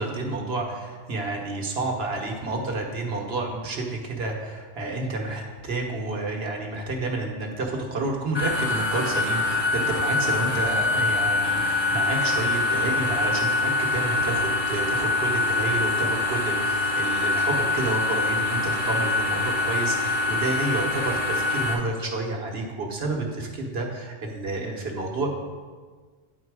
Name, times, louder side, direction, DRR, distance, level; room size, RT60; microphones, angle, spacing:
voice 1, 0.0-25.3, right 2 dB, 65° right, 1 dB, 1.3 m, -30 dB
sound 1, 8.3-21.7, left 2 dB, 25° left, 1.0 m, -24 dB
9.7 x 4.4 x 4.7 m, 1.5 s
omnidirectional pair, 1.1 m